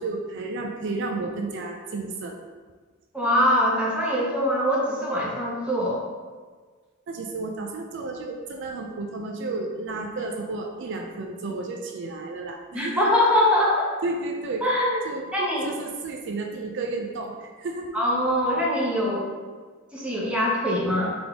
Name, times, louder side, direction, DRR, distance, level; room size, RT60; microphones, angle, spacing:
voice 1, 0.0-2.4 7.1-13.0 14.0-14.6 15.0-15.3 15.6-17.9, right 3 dB, 60° right, 2 dB, 0.4 m, -32 dB
voice 2, 3.1-6.0 12.7-13.9 14.6-15.0 15.3-15.7 17.9-19.3 19.9-21.2, left 1 dB, 5° right, -5 dB, 0.8 m, -23 dB
4.0 x 3.3 x 3.5 m, 1.5 s
head